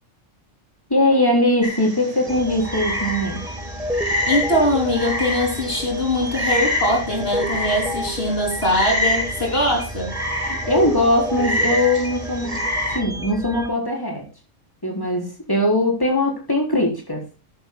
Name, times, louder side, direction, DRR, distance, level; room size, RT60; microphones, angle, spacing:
voice 1, 0.9-3.4 10.4-12.7 12.9-14.2 14.8-17.2, left 1 dB, 15° left, 0 dB, 4.4 m, -20 dB
Frog, 1.6-13.0, left 1 dB, 30° right, 2.1 m, -27 dB
sound 1, 2.3-13.7, equal, 5° right, 1.3 m, -31 dB
voice 2, 4.3-10.2, left 1 dB, 50° left, 0 dB, 3.5 m, -22 dB
14.5 x 11.0 x 2.3 m, 0.32 s
omnidirectional pair, 1.3 m